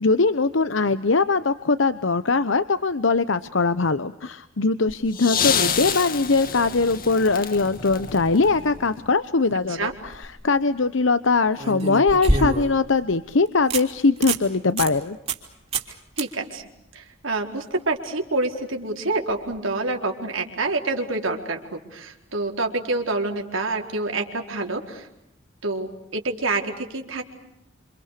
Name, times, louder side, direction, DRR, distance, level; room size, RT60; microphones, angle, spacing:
voice 1, 0.0-15.2, left 3 dB, 70° left, 12 dB, 0.9 m, -21 dB
sound 1, 4.9-9.1 10.2-10.3, left 7 dB, 45° left, 2.1 m, -28 dB
sound 2, 9.8-10.2 11.6-12.9 13.3-13.4 13.7-13.8 14.2-14.4 14.8-14.9 15.3-15.5 15.7-15.9 16.2-16.3 19.4-19.5, right 2 dB, 30° right, 3.4 m, -25 dB
voice 2, 16.2-16.7 16.9-25.1 25.6-27.3, right 2 dB, 85° right, 2 dB, 4.6 m, -27 dB
28.5 x 28.0 x 6.8 m, 0.85 s
head